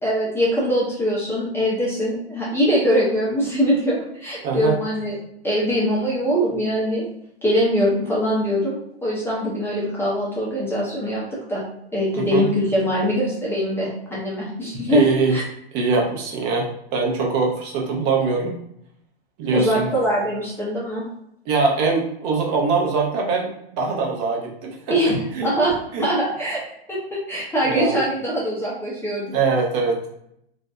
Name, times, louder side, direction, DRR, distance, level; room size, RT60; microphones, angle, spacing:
voice 1, 0.0-5.2 5.4-7.1 7.4-11.6 11.9-15.0 15.3-15.4 19.5-21.0 24.9-26.6 26.9-29.4, equal, 10° left, -7 dB, 0.4 m, -22 dB
voice 2, 4.4-4.7 12.1-12.4 14.9-15.4 15.7-18.6 19.4-19.9 21.5-25.5 25.9-26.1 27.6-28.0 29.3-30.1, right 4 dB, 40° right, 0 dB, 0.6 m, -22 dB
2.5 x 2.1 x 2.3 m, 0.73 s
hypercardioid pair, 110°, 31 cm